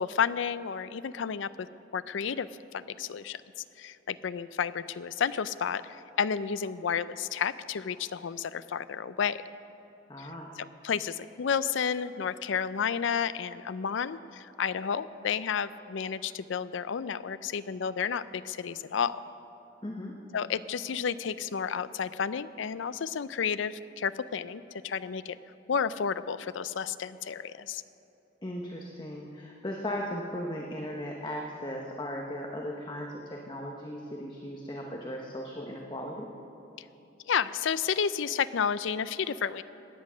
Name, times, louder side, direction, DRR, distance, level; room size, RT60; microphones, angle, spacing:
voice 1, 0.0-1.7 1.9-3.4 3.8-9.4 10.2-10.3 10.6-19.2 20.3-25.4 25.7-27.8 37.3-39.6, left 7 dB, 70° left, 15 dB, 0.4 m, -31 dB
voice 2, 10.1-10.5 19.8-20.2 28.4-36.3, equal, 20° left, 0 dB, 0.9 m, -37 dB
16.5 x 9.7 x 6.2 m, 2.9 s
head